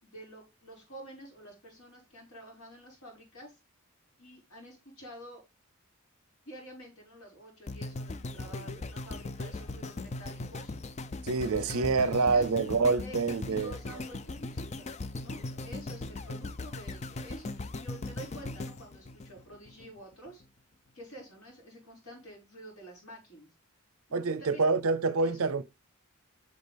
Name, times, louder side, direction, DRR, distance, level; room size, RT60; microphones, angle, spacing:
voice 1, 0.0-3.6 4.2-5.4 6.5-10.7 11.2-12.5 13.0-14.9 15.2-20.4 20.9-23.5 24.1-24.6 25.2-25.4, equal, 70° left, 5.5 m, -49 dB
sound 1, 7.7-19.9 20.4-20.5, left 2 dB, 30° left, 0.4 m, -39 dB
voice 2, 11.2-13.8 24.1-25.6, right 4 dB, 75° right, 0.7 m, -27 dB
8.5 x 6.6 x 3.4 m
head